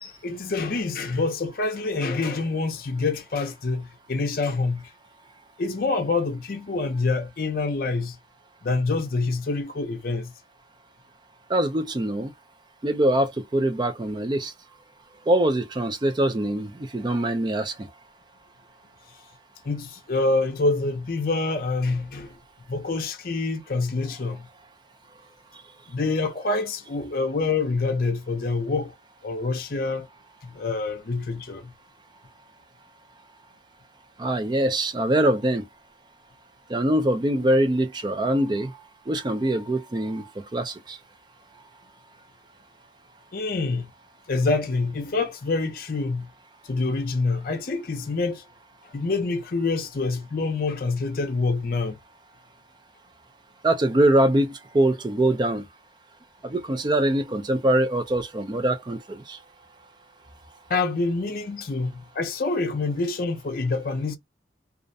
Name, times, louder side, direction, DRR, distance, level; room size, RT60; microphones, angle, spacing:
voice 1, 0.0-4.9 5.6-8.2 8.6-10.3 19.6-22.3 22.7-24.5 25.9-28.9 29.2-30.1 30.4-31.7 43.3-43.9 44.3-46.3 46.7-48.4 48.9-51.9 60.7-64.2, left 3 dB, 50° left, 0.5 m, -26 dB
voice 2, 11.5-12.3 12.8-14.5 15.3-17.9 34.2-35.6 36.7-38.7 39.1-41.0 53.6-55.6 56.4-59.4, right 1 dB, 25° right, 0.4 m, -23 dB
2.4 x 2.1 x 2.6 m
head